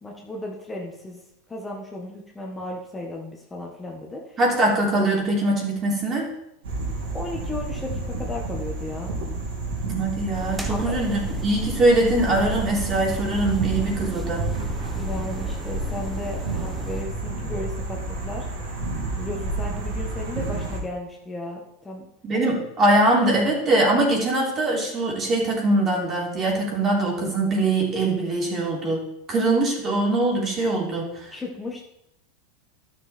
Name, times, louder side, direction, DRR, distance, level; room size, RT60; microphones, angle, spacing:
voice 1, 0.0-1.2 1.5-4.4 7.1-9.1 10.7-11.0 14.9-18.5 19.2-22.1 31.3-31.8, left 1 dB, 15° left, -1 dB, 1.6 m, -34 dB
voice 2, 4.4-6.3 9.8-14.5 22.2-29.0 29.3-31.1, right 2 dB, 35° right, -2 dB, 3.6 m, -22 dB
sound 1, 6.6-20.8, right 2 dB, 80° right, 3.5 m, -31 dB
sound 2, 10.3-17.0, right 1 dB, 5° right, 1.2 m, -33 dB
12.0 x 6.6 x 4.4 m, 0.80 s
hypercardioid pair, 105°, 0 cm